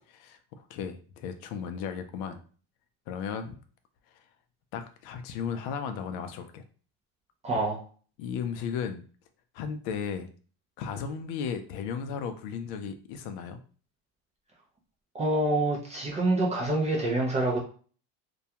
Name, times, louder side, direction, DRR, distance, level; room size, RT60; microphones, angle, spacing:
voice 1, 0.1-2.4 3.1-3.6 4.1-4.2 4.7-6.6 8.2-9.0 9.5-10.3 10.8-13.6, left 7 dB, 65° left, 8 dB, 0.5 m, -35 dB
voice 2, 7.4-7.8 15.1-17.6, right 2 dB, 15° right, -2 dB, 0.4 m, -26 dB
2.3 x 2.2 x 2.8 m, 0.41 s
cardioid pair, 135°, 42 cm